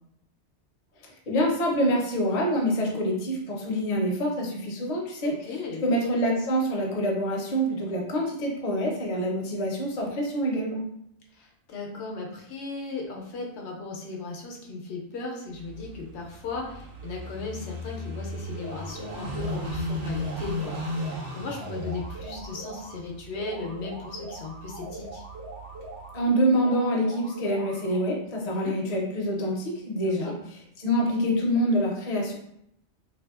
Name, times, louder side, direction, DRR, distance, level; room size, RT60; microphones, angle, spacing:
voice 1, 1.3-5.4 5.8-10.8 26.1-30.3 30.8-32.3, equal, 45° left, -1 dB, 0.6 m, -26 dB
voice 2, 5.2-5.8 11.3-25.2 28.5-28.8 30.0-30.3, left 3 dB, 75° left, 0 dB, 0.9 m, -36 dB
Car passing by / Idling, 15.5-26.2, left 1 dB, 60° right, 0.8 m, -36 dB
sound 1, 18.5-19.7 20.1-22.9 23.3-26.1 26.5-28.1, right 1 dB, 85° right, 1.1 m, -42 dB
3.1 x 2.6 x 2.3 m, 0.74 s
omnidirectional pair, 1.2 m